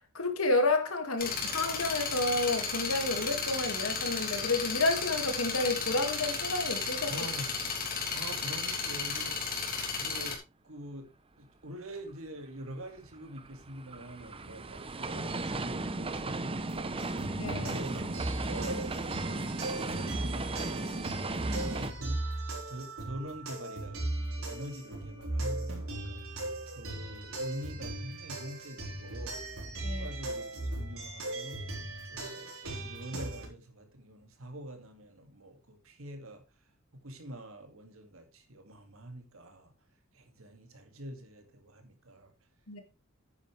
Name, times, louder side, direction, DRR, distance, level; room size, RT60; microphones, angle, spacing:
voice 1, 0.0-7.1 17.3-17.7 29.8-30.1 42.7-42.8, left 2 dB, 80° left, 2.3 m, -30 dB
sound 1, 1.2-10.3, left 5 dB, 45° left, 3.1 m, -34 dB
voice 2, 7.1-7.5 8.1-9.4 10.0-10.4 10.6-11.1 11.4-17.0 17.5-18.1 18.5-18.9 19.3-22.2 22.7-26.2 26.7-29.4 29.8-31.8 32.1-36.4 36.9-39.7 40.1-42.3, right 1 dB, 70° right, 2.3 m, -45 dB
sound 2, 12.6-21.9, right 2 dB, 25° right, 0.8 m, -36 dB
sound 3, 17.0-33.5, right 1 dB, 90° right, 4.7 m, -37 dB
10.0 x 9.6 x 3.3 m
head